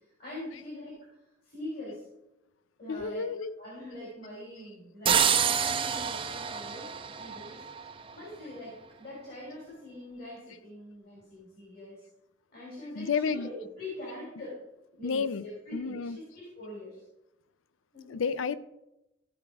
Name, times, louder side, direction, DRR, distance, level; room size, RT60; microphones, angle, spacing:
voice 1, 0.2-1.0 1.4-2.0 2.8-3.3 3.6-7.6 8.1-12.0 12.5-14.6 14.9-17.0 17.9-18.2, left 1 dB, 50° left, -5 dB, 3.0 m, -43 dB
voice 2, 2.9-3.6 12.9-13.5 15.0-15.5 15.7-16.2 18.1-18.6, left 5 dB, 75° left, 15 dB, 0.5 m, -31 dB
sound 1, 5.1-7.9, right 7 dB, 25° right, 0.5 m, -27 dB
14.0 x 4.7 x 4.8 m, 0.92 s
head